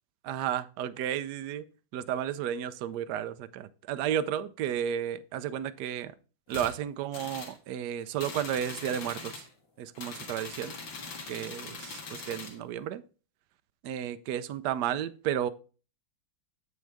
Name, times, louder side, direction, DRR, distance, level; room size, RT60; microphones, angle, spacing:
voice 1, 0.2-1.6 1.9-6.1 6.5-9.4 9.8-10.7 11.3-13.0 13.8-15.5, right 10 dB, 70° right, 1.1 m, -33 dB
sound 1, 6.5-6.7 7.1-7.6 8.2-9.5 9.9-12.6, left 4 dB, 90° left, 2.4 m, -42 dB
7.4 x 6.3 x 3.4 m
omnidirectional pair, 2.0 m